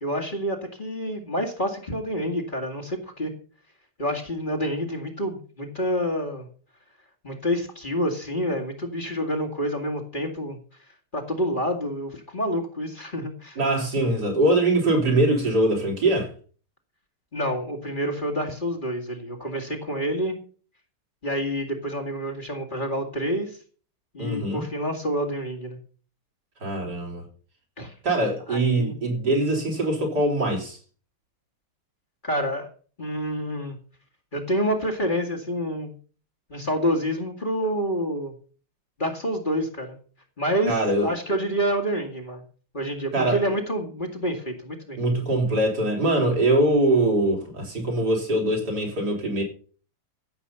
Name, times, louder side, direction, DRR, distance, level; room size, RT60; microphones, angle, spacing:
voice 1, 0.0-3.3 4.0-6.5 7.2-10.6 11.1-13.6 17.3-20.4 21.2-23.6 24.1-25.8 27.8-27.9 28.5-28.9 32.2-32.7 33.0-33.8 34.3-35.9 36.5-38.3 39.0-40.0 40.4-42.4 42.7-45.0, equal, 25° left, 2.2 m, -28 dB
voice 2, 13.6-16.3 24.2-24.6 26.6-27.2 28.0-30.8 40.7-41.1 43.1-43.4 45.0-49.4, right 1 dB, 60° right, 4.6 m, -22 dB
15.5 x 8.0 x 5.6 m
omnidirectional pair, 2.0 m